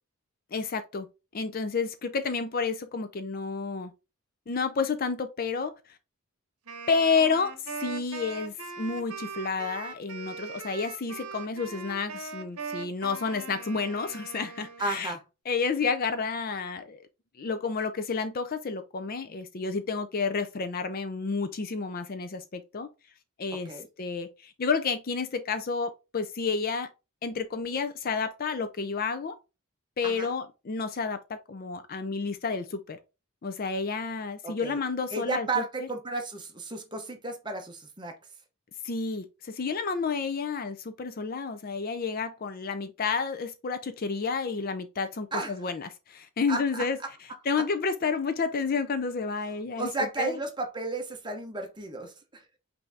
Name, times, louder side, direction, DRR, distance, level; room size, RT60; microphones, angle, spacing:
voice 1, 0.5-1.1 1.3-3.9 4.5-5.7 6.9-7.5 7.8-15.1 15.5-17.0 17.4-22.9 23.4-26.9 27.2-29.4 30.0-33.0 33.4-35.9 38.8-47.0 47.5-49.9 50.2-50.4, left 5 dB, 40° left, 0.4 m, -30 dB
Wind instrument woodwind instrument, 6.7-15.1, right 5 dB, 80° right, 0.8 m, -40 dB
voice 2, 14.8-15.2 23.5-23.9 30.0-30.3 34.4-34.8 35.1-38.2 45.3-45.5 46.5-47.1 47.6-47.7 49.8-52.4, right 3 dB, 20° right, 0.8 m, -33 dB
5.6 x 2.7 x 3.4 m
head